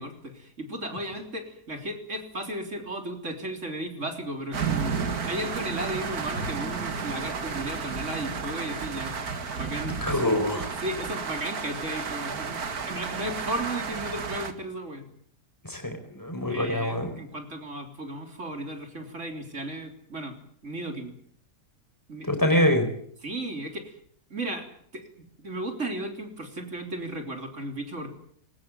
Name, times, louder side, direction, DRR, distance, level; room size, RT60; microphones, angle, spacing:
voice 1, 0.0-5.0 5.2-9.2 9.5-10.2 10.5-15.0 16.5-20.4 20.6-21.1 22.1-22.3 23.2-24.0 24.3-24.7 24.9-28.1, right 1 dB, 45° right, 5 dB, 3.9 m, -35 dB
sound 1, 4.5-14.5, right 5 dB, 65° right, 2.3 m, -32 dB
voice 2, 10.0-10.7 15.6-17.1 22.2-22.9, left 1 dB, 10° left, 7 dB, 4.5 m, -25 dB
21.5 x 19.0 x 9.4 m, 0.64 s
omnidirectional pair, 1.7 m